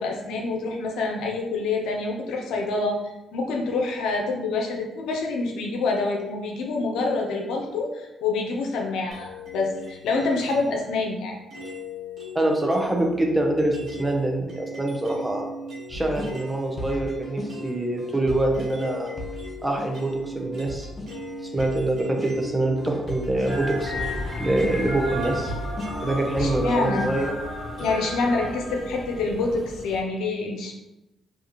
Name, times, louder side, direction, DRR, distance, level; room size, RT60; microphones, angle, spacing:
voice 1, 0.0-11.4 26.3-27.1 27.8-30.7, left 3 dB, 80° left, 1 dB, 0.5 m, -27 dB
sound 1, 9.1-10.8 11.5-16.6 16.9-28.3, left 1 dB, 65° right, 0.9 m, -38 dB
voice 2, 12.3-15.4 15.9-19.1 19.6-20.9 21.5-23.9 24.4-25.5 26.0-27.3, right 1 dB, 15° right, 1 dB, 0.7 m, -25 dB
sound 2, 15.9-27.4, left 1 dB, 35° left, 0.7 m, -37 dB
sound 3, 23.5-30.0, equal, 10° left, 1.3 m, -33 dB
2.4 x 2.4 x 2.8 m, 0.95 s
supercardioid pair, 50°, 0 cm